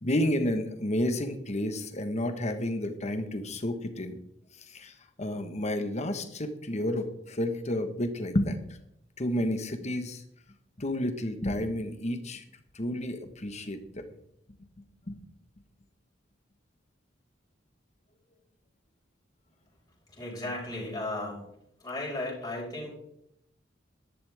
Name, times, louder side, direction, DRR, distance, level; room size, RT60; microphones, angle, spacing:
voice 1, 0.0-4.2 4.7-4.9 5.2-8.6 9.2-10.2 10.8-12.4 12.7-14.0 15.1-15.2, left 1 dB, 40° left, 7 dB, 1.3 m, -30 dB
voice 2, 20.1-21.4 21.8-22.9, left 2 dB, 20° left, -4 dB, 5.5 m, -35 dB
14.0 x 11.5 x 3.6 m, 0.74 s
head